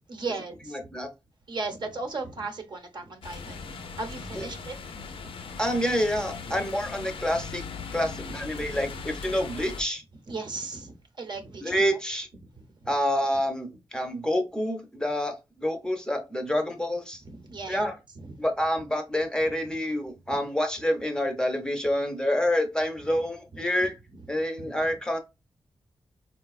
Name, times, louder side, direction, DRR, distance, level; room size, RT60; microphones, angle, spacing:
voice 1, 0.1-0.8 1.5-5.1 6.5-6.6 8.6-8.8 10.3-11.8 12.8-12.9 17.3-17.9 18.1-18.3 20.3-20.4 23.5-23.9 24.6-24.7, right 3 dB, 60° right, 0.8 m, -37 dB
voice 2, 0.7-1.1 4.3-4.4 5.6-7.6 7.9-10.0 11.6-12.3 12.9-17.2 17.7-18.0 18.4-24.0 24.3-25.2, equal, 10° left, 0.6 m, -27 dB
sound 1, 3.2-9.8, left 5 dB, 90° left, 0.5 m, -39 dB
4.0 x 2.2 x 2.3 m
wide cardioid pair, 105°, 9 cm